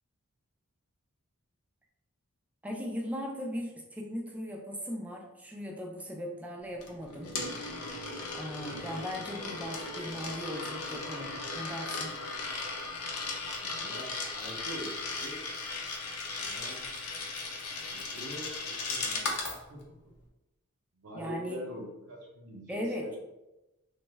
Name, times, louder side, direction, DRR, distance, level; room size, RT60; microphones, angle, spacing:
voice 1, 2.6-7.4 8.3-12.1 21.1-21.6 22.7-23.2, equal, 5° right, 0 dB, 0.4 m, -38 dB
Coin (dropping), 6.8-19.6, left 3 dB, 75° left, 0.6 m, -37 dB
voice 2, 13.6-15.4 16.4-16.8 17.9-20.0 21.0-23.2, equal, 80° right, -3 dB, 0.8 m, -44 dB
3.1 x 2.1 x 3.3 m, 1.0 s
head